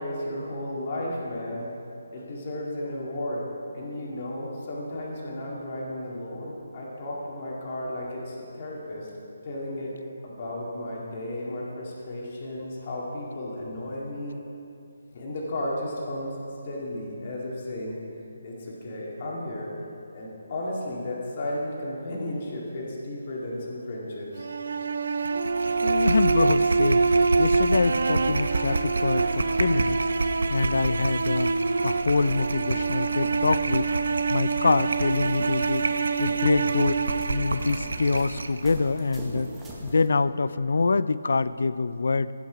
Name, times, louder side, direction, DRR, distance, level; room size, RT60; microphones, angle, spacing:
voice 1, 0.0-1.7 2.1-3.5 3.7-9.1 9.4-9.9 10.2-14.4 15.1-16.4 16.6-18.0 18.4-19.7 20.1-24.5, left 1 dB, 30° left, -4 dB, 1.9 m, -34 dB
sound 1, 24.4-38.5, right 4 dB, 55° right, 0.3 m, -26 dB
sound 2, 25.2-38.6, right 3 dB, 85° right, 0.7 m, -31 dB
voice 2, 25.8-27.1 27.4-30.0 30.5-33.9 34.3-35.9 36.2-37.0 37.3-39.5 39.8-42.3, left 3 dB, 65° left, 16 dB, 0.3 m, -25 dB
sound 3, 27.7-40.1, right 1 dB, 5° right, 0.8 m, -45 dB
15.5 x 5.9 x 5.0 m, 2.7 s
hypercardioid pair, 175°, 0 cm